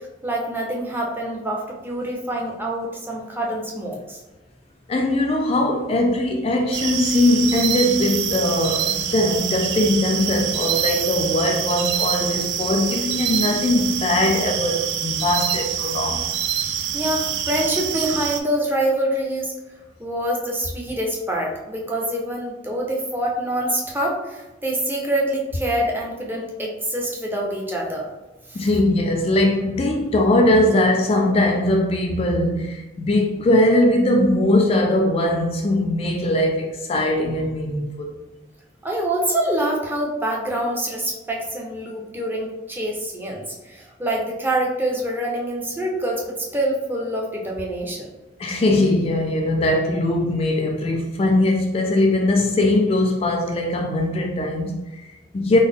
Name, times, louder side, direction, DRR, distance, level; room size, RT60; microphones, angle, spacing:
voice 1, 0.2-4.2 16.9-19.5 20.0-28.1 28.5-28.7 38.8-48.1, right 1 dB, 10° right, -2 dB, 0.6 m, -25 dB
voice 2, 4.9-16.3 28.5-38.1 48.4-55.6, left 1 dB, 30° left, 2 dB, 0.3 m, -20 dB
sound 1, 6.7-18.4, right 9 dB, 65° right, 0.3 m, -25 dB
3.8 x 2.0 x 3.5 m, 1.1 s
head